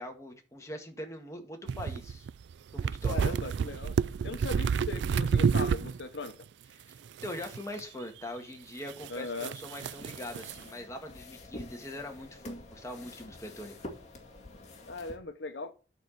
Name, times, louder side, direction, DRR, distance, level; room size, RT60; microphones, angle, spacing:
voice 1, 0.0-2.3 2.7-3.2 6.8-13.8, left 1 dB, 15° left, 1.9 m, -42 dB
sound 1, 1.7-6.0 6.3-6.4 7.2-7.8 8.9-9.1 9.4-10.6, right 6 dB, 70° right, 0.4 m, -29 dB
voice 2, 3.1-4.0 4.2-6.4 9.1-9.5 14.8-15.7, left 3 dB, 70° left, 0.9 m, -38 dB
sound 2, 9.8-15.2, left 1 dB, 40° left, 2.1 m, -47 dB
11.0 x 4.6 x 6.6 m
head